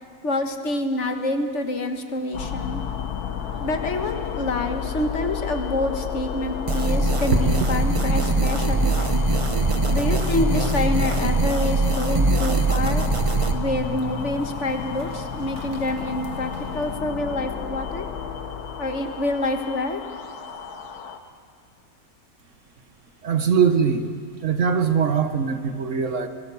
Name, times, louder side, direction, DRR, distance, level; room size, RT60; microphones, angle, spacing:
voice 1, 0.2-2.8 3.6-9.2 9.9-13.1 13.5-18.1 18.8-20.0, left 2 dB, 50° left, 6 dB, 1.6 m, -27 dB
sound 1, 2.3-21.2, left 7 dB, 90° left, 1.6 m, -32 dB
sound 2, 6.7-13.5, right 2 dB, 25° right, 0.9 m, -22 dB
sound 3, 7.3-17.0, right 3 dB, 80° right, 2.1 m, -35 dB
voice 2, 23.2-24.2 24.4-26.3, right 6 dB, 55° right, 8 dB, 1.3 m, -21 dB
25.0 x 18.0 x 7.0 m, 2.2 s
omnidirectional pair, 1.6 m